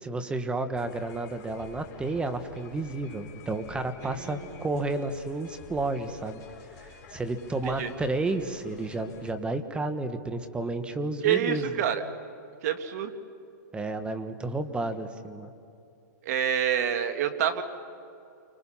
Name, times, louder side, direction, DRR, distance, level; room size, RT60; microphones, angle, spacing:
voice 1, 0.0-6.4 6.8-11.6 13.7-15.5, right 2 dB, 10° right, 9 dB, 1.5 m, -31 dB
sound 1, 0.8-9.3, left 6 dB, 35° left, 3.9 m, -49 dB
voice 2, 4.0-4.6 7.6-7.9 11.2-12.0 12.6-13.1 16.3-17.6, right 9 dB, 60° right, 7 dB, 2.2 m, -27 dB
30.0 x 25.5 x 5.8 m, 2.7 s
hypercardioid pair, 135°, 10 cm